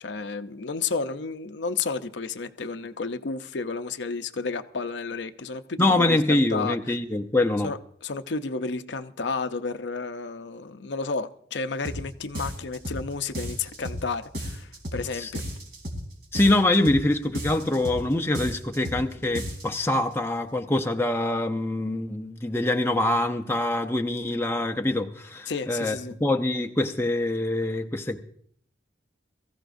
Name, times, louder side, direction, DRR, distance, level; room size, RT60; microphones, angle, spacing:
voice 1, 0.0-6.8 7.6-15.4 25.5-26.1, left 4 dB, 70° left, 0.7 m, -32 dB
voice 2, 5.8-7.7 15.2-15.3 16.3-28.2, left 1 dB, 15° left, 0.6 m, -24 dB
sound 1, 11.8-12.0 12.3-13.0 13.3-14.0 14.3-15.0 15.3-16.0 16.3-17.0 17.3-18.0 18.3-19.0 19.3-19.8, equal, 55° right, 3.5 m, -33 dB
23.0 x 15.0 x 2.6 m
head